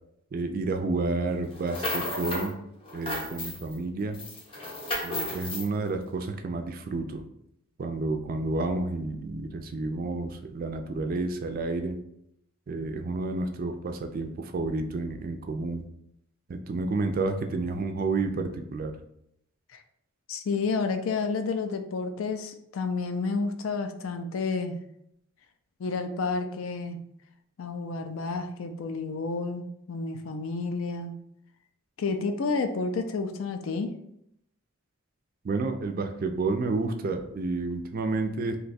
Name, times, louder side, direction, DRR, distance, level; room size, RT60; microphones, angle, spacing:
voice 1, 0.3-2.5 2.9-4.2 5.0-7.3 7.8-12.0 12.7-15.9 16.5-18.9 35.4-38.6, right 3 dB, 40° right, 6 dB, 0.3 m, -30 dB
sound 1, 1.5-2.5 2.8-3.8 4.1-5.7, left 1 dB, 25° left, 0.6 m, -33 dB
voice 2, 20.3-24.8 25.8-27.0 27.6-31.1 32.0-33.9, left 4 dB, 65° left, 7 dB, 0.4 m, -30 dB
2.7 x 2.2 x 4.0 m, 0.75 s
head